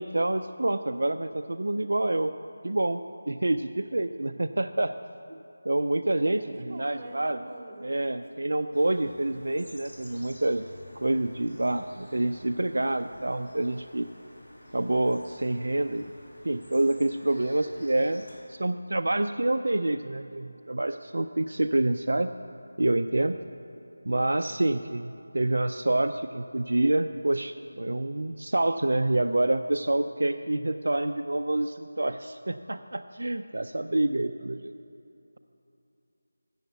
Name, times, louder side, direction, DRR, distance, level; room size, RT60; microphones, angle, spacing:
voice 1, 0.0-2.3 2.6-3.0 3.3-4.9 5.3-5.4 5.7-7.4 7.8-10.6 11.0-14.1 14.7-16.1 16.4-22.3 22.8-23.4 24.1-34.7, right 2 dB, 70° right, 9 dB, 0.3 m, -27 dB
voice 2, 6.4-8.2, right 1 dB, 30° right, -1 dB, 1.2 m, -44 dB
sound 1, 8.7-18.4, left 1 dB, 50° left, 2.8 m, -51 dB
7.9 x 7.1 x 8.1 m, 2.7 s
figure-of-eight pair, 170°, 0 cm